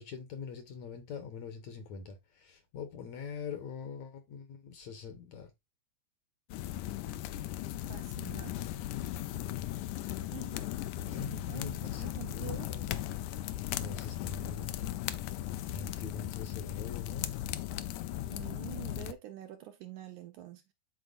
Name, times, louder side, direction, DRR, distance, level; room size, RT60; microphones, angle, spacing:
voice 1, 0.0-5.5 11.0-12.9 13.7-14.9 15.7-17.3, left 5 dB, 65° left, 2.0 m, -43 dB
sound 1, 6.5-19.1, left 13 dB, 80° left, 1.7 m, -37 dB
voice 2, 7.9-8.5 10.3-10.6 11.2-12.7 18.3-20.7, right 12 dB, 75° right, 1.9 m, -46 dB
11.5 x 4.4 x 2.5 m
omnidirectional pair, 4.0 m